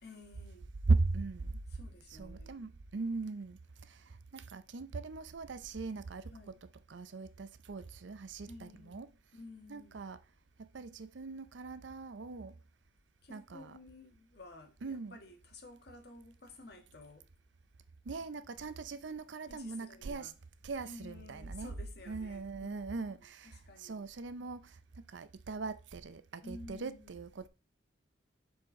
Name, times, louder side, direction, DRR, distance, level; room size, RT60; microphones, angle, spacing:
voice 1, 0.0-0.7 1.7-2.5 6.3-6.6 8.5-9.1 9.3-10.0 13.2-17.3 18.9-19.0 19.5-20.3 20.8-23.0 23.4-24.0 26.4-27.2, left 2 dB, 60° left, 1.5 m, -53 dB
voice 2, 0.9-1.5 2.1-3.6 4.3-6.3 6.9-9.1 9.7-10.2 10.6-12.5 13.3-13.7 14.8-15.2 18.1-20.3 20.6-21.7 22.1-24.7 25.1-27.5, right 3 dB, 85° right, 0.6 m, -38 dB
7.6 x 4.4 x 3.7 m
head